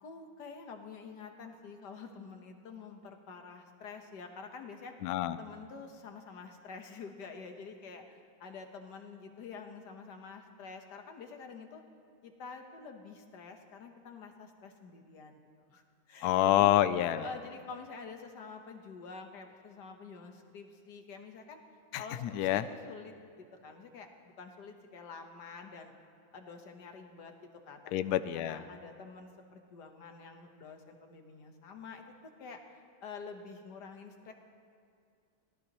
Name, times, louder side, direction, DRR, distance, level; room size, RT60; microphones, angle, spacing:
voice 1, 0.0-5.0 5.4-11.8 12.2-15.4 15.7-16.7 17.1-21.6 22.0-25.9 26.3-27.3 27.7-28.0 28.3-32.6 33.0-34.3, left 4 dB, 60° left, 5 dB, 1.7 m, -48 dB
voice 2, 5.0-5.4 16.2-17.2 22.2-22.6 27.9-28.6, left 13 dB, 90° left, 13 dB, 0.8 m, -27 dB
23.5 x 17.0 x 3.0 m, 2.4 s
omnidirectional pair, 2.2 m